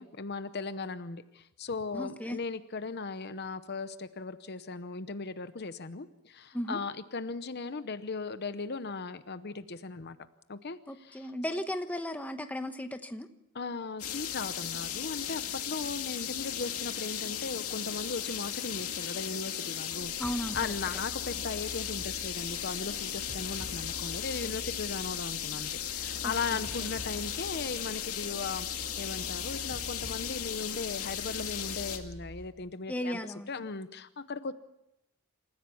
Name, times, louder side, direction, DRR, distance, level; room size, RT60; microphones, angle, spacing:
voice 1, 0.0-10.2 10.5-11.3 13.5-33.2 33.5-34.5, left 4 dB, 50° left, 12 dB, 0.8 m, -38 dB
voice 2, 1.9-2.4 6.5-6.8 10.9-13.3 20.2-20.6 26.2-26.6 32.9-33.6, equal, 5° left, 7 dB, 1.1 m, -35 dB
sound 1, 14.0-32.0, left 9 dB, 85° left, 2.3 m, -36 dB
sound 2, 20.0-32.5, left 1 dB, 30° left, 2.8 m, -47 dB
27.5 x 15.0 x 7.0 m, 0.87 s
head